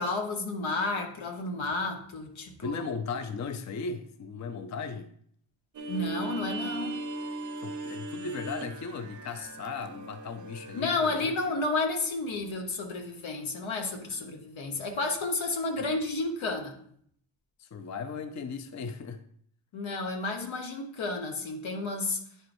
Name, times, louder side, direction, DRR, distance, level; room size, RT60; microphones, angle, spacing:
voice 1, 0.0-2.8 5.9-7.0 10.7-16.8 19.7-22.2, left 3 dB, 85° left, 3 dB, 1.2 m, -31 dB
voice 2, 2.6-5.1 7.6-11.3 14.1-14.2 15.8-15.9 17.6-19.2, left 5 dB, 40° left, 7 dB, 0.5 m, -37 dB
sound 1, 5.7-10.8, right 2 dB, 40° right, 0.5 m, -38 dB
9.5 x 4.6 x 2.6 m, 0.64 s
wide cardioid pair, 125°, 45 cm